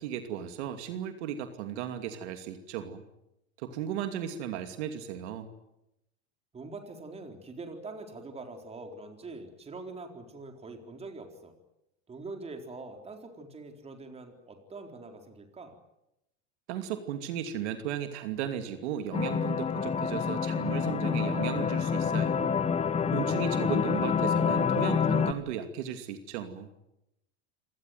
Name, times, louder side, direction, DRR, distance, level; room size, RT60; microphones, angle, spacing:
voice 1, 0.0-3.0 3.6-5.5 16.7-22.5 23.1-26.7, right 9 dB, 70° right, 8 dB, 2.7 m, -35 dB
voice 2, 6.5-11.5 12.1-15.7 24.1-24.6, right 3 dB, 15° right, 4 dB, 4.1 m, -44 dB
sound 1, 19.1-25.3, left 6 dB, 20° left, 1.2 m, -27 dB
27.0 x 18.5 x 9.5 m, 0.87 s
supercardioid pair, 140°, 35 cm